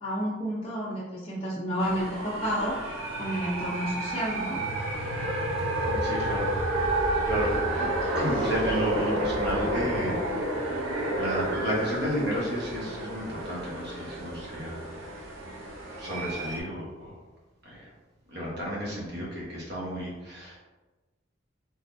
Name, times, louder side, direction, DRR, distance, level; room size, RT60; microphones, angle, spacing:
voice 1, 0.0-2.8 3.2-4.6, equal, 30° left, -9 dB, 0.6 m, -30 dB
sound 1, 1.8-16.6, right 1 dB, 85° right, 0.8 m, -30 dB
voice 2, 5.9-6.5 7.3-7.5 7.8-7.9 8.1-10.2 11.1-15.0 16.0-17.2 17.6-17.8 18.3-20.6, equal, 55° right, -4 dB, 1.1 m, -32 dB
3.9 x 3.3 x 2.6 m, 1.1 s
head